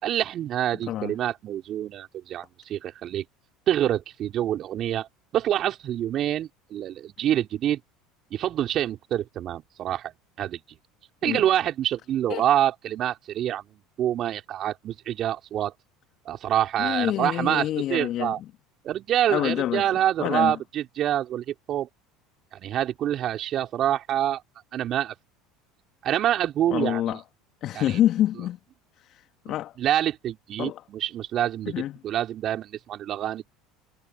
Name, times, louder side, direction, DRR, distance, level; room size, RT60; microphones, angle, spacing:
voice 1, 0.0-3.2 3.7-7.8 8.3-10.1 10.4-10.6 11.2-15.7 16.2-18.4 18.8-21.9 22.5-24.4 24.7-25.1 26.0-27.2 27.7-28.0 29.8-33.5, right 11 dB, 50° right, 4.8 m, -26 dB
voice 2, 16.8-18.3 19.3-19.8 20.2-20.6 26.7-27.2 27.6-28.6 29.0-29.7 30.6-30.8 31.7-32.0, left 12 dB, 50° left, 2.0 m, -27 dB
hypercardioid pair, 75°, 0 cm